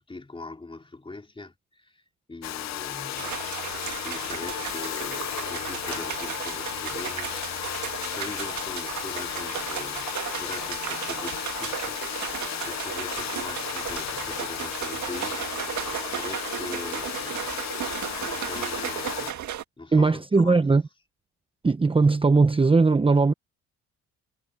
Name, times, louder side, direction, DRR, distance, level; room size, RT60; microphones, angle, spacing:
voice 1, 0.0-3.7 4.0-17.5 18.2-19.5 19.8-20.8, left 2 dB, 15° left, 3.2 m, -42 dB
Domestic sounds home sounds, 2.4-19.3, left 12 dB, 60° left, 0.8 m, -34 dB
sound 1, 3.2-19.6, right 11 dB, 70° right, 1.9 m, -35 dB
voice 2, 19.9-20.8 21.6-23.3, right 3 dB, 20° right, 0.9 m, -19 dB
cardioid pair, 90°, 30 cm